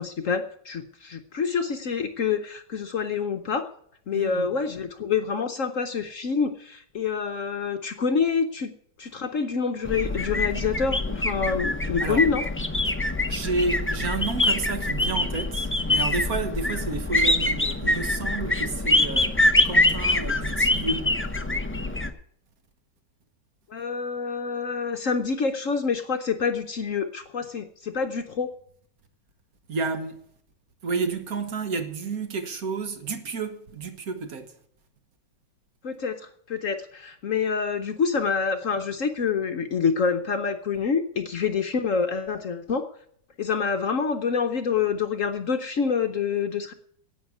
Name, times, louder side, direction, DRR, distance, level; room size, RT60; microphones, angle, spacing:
voice 1, 0.0-3.7 4.1-8.7 9.0-12.4 23.7-28.5 35.8-42.9 43.4-46.7, left 5 dB, 55° left, 1.0 m, -27 dB
voice 2, 4.1-4.5 12.0-12.3 12.9-13.0 13.3-21.2 29.7-30.3 30.8-34.6, right 4 dB, 55° right, 1.7 m, -31 dB
sound 1, 9.8-22.1, left 2 dB, 15° left, 0.4 m, -24 dB
11.0 x 8.8 x 9.4 m
omnidirectional pair, 1.9 m